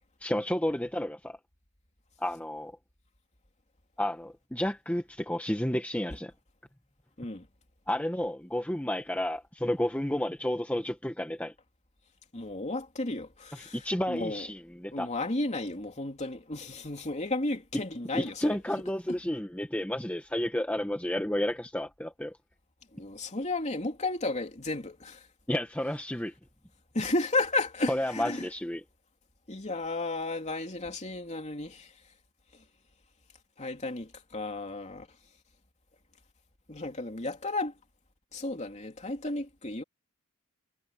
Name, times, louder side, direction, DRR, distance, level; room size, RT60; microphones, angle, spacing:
voice 1, 0.2-1.4 2.2-2.8 4.0-6.3 7.9-11.5 13.5-15.1 17.7-17.8 18.1-22.4 25.5-26.3 27.9-28.8, left 1 dB, 5° left, 1.2 m, -31 dB
voice 2, 12.3-13.8 14.1-14.5 14.9-18.6 22.9-25.2 26.9-28.5 29.5-31.9 33.6-35.1 36.7-37.7 38.3-39.8, left 2 dB, 35° left, 3.0 m, -33 dB
head